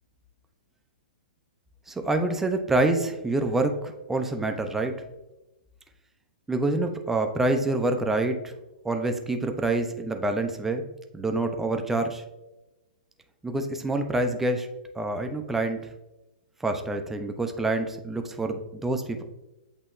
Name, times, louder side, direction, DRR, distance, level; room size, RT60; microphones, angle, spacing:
voice 1, 1.9-5.0 6.5-8.5 8.8-10.9 11.1-12.2 13.4-14.7 14.9-15.9 16.6-19.2, right 2 dB, 5° right, 5 dB, 0.4 m, -27 dB
8.1 x 2.9 x 2.3 m, 0.98 s
figure-of-eight pair, 110°, 5 cm